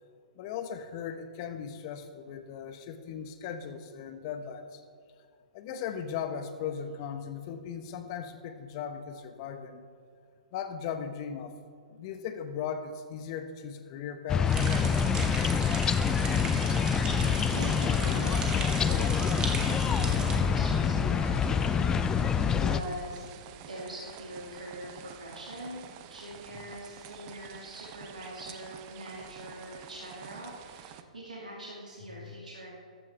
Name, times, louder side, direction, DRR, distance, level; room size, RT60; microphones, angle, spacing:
voice 1, 0.4-4.8 5.5-9.8 10.5-11.6 11.9-14.6 32.1-32.2, left 7 dB, 40° left, 8 dB, 1.1 m, -38 dB
sound 1, 14.3-22.8, left 7 dB, 15° left, 0.4 m, -26 dB
sound 2, 14.4-31.0, right 10 dB, 35° right, 0.8 m, -48 dB
sound 3, 14.5-20.3, right 4 dB, 20° right, 2.0 m, -38 dB
voice 2, 17.5-22.0 22.5-23.3 23.7-25.8 26.1-32.7, right 1 dB, 85° right, -4 dB, 2.3 m, -43 dB
14.5 x 12.0 x 3.4 m, 2.3 s
figure-of-eight pair, 120°, 4 cm